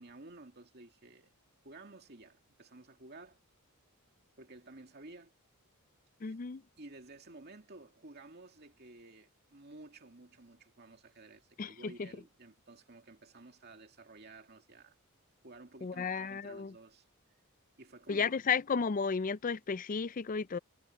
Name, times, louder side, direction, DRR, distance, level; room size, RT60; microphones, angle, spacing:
voice 1, 0.0-1.3 1.6-3.4 4.4-5.3 6.2-6.4 6.8-15.0 15.4-17.0 17.8-18.4, right 2 dB, 45° right, 2.4 m, -53 dB
voice 2, 6.2-6.6 11.6-12.1 15.8-16.7 18.1-20.6, left 5 dB, 35° left, 0.4 m, -33 dB
head